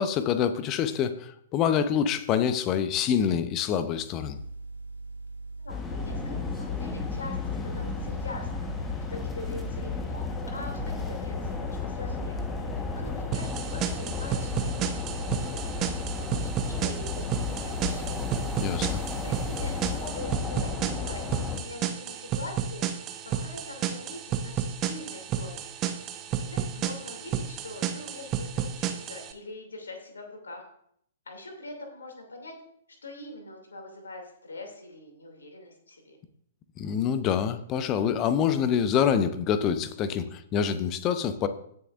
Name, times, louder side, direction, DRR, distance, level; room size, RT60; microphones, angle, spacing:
voice 1, 0.0-4.4 18.6-19.0 36.8-41.5, left 8 dB, 25° left, 12 dB, 0.7 m, -26 dB
sound 1, 4.3-19.8, right 3 dB, 85° left, 3.1 m, -41 dB
voice 2, 5.6-12.4 12.8-18.4 19.0-25.7 26.3-30.7 31.3-32.5 33.0-36.2, left 2 dB, 65° left, 2 dB, 2.7 m, -43 dB
sound 2, 5.7-21.6, left 5 dB, 10° left, 1.2 m, -33 dB
sound 3, 13.3-29.3, right 9 dB, 25° right, 0.9 m, -32 dB
17.0 x 6.7 x 2.5 m, 0.70 s
figure-of-eight pair, 115°, 0 cm